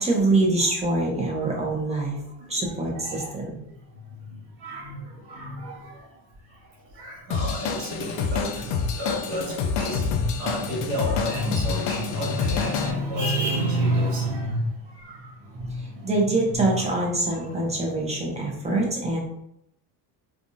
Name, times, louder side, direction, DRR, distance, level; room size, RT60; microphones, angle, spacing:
voice 1, 0.0-2.2 2.5-3.6 16.0-19.2, right 2 dB, 15° right, -2 dB, 0.8 m, -24 dB
voice 2, 1.4-2.0 2.2-6.2 6.4-18.8, equal, 80° right, -3 dB, 1.4 m, -31 dB
Drum kit / Drum, 7.3-12.9, left 6 dB, 75° left, 0.6 m, -28 dB
3.5 x 2.5 x 2.6 m, 0.77 s
cardioid pair, 130°, 42 cm